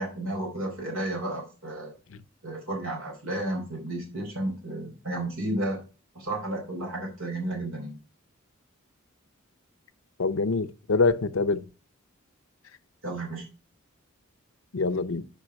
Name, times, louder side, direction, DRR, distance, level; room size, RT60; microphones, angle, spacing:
voice 1, 0.0-1.9 2.4-5.8 6.1-8.0 13.0-13.5, right 1 dB, 85° right, 4.5 m, -32 dB
voice 2, 10.2-11.6 14.7-15.2, left 3 dB, 65° left, 0.7 m, -25 dB
8.6 x 5.4 x 6.2 m
head